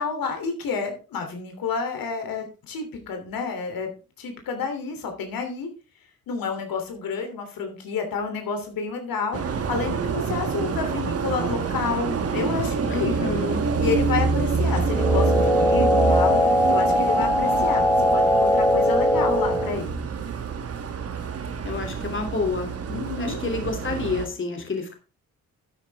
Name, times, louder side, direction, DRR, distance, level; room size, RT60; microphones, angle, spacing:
voice 1, 0.0-3.9 4.2-5.7 6.3-13.4 13.8-16.4 16.7-17.8 18.1-20.1 22.9-23.4, left 5 dB, 90° left, 5 dB, 3.1 m, -29 dB
sound 1, 9.3-24.3, right 5 dB, 45° right, 1.4 m, -27 dB
voice 2, 12.9-13.7 21.6-22.7 23.2-24.9, left 4 dB, 35° left, 4 dB, 2.9 m, -29 dB
sound 2, 14.9-19.8, left 1 dB, 5° left, 1.2 m, -20 dB
12.5 x 8.9 x 3.5 m, 0.31 s
cardioid pair, 120°, 34 cm